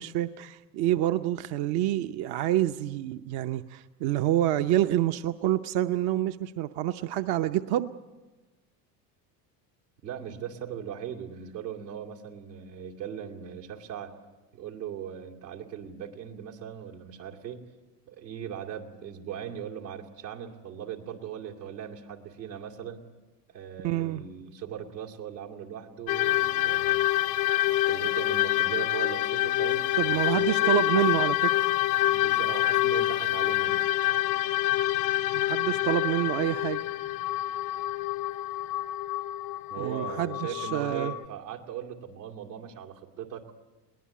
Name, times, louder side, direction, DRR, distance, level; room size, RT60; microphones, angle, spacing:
voice 1, 0.0-7.9 23.8-24.2 30.0-31.7 35.3-36.8 39.8-41.1, right 13 dB, 55° right, 9 dB, 0.8 m, -27 dB
voice 2, 10.0-14.1 14.5-17.6 18.1-23.0 23.5-27.1 27.9-31.0 31.9-33.9 39.7-43.5, right 9 dB, 85° right, 1 dB, 2.6 m, -39 dB
sound 1, 26.1-41.3, left 15 dB, 70° left, 0.8 m, -27 dB
22.0 x 18.5 x 8.5 m, 1.2 s
hypercardioid pair, 80°, 49 cm